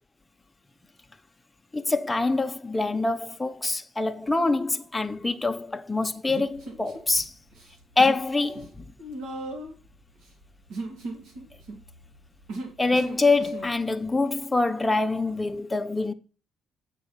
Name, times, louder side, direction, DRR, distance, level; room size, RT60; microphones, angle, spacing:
voice 1, 1.7-7.3 8.0-8.8 12.8-16.1, left 3 dB, 15° left, 0.9 m, -25 dB
Human voice, 6.3-7.2 7.5-8.3 8.5-13.7, right 2 dB, 90° right, 2.6 m, -38 dB
7.9 x 5.3 x 5.7 m
cardioid pair, 90°, 0 cm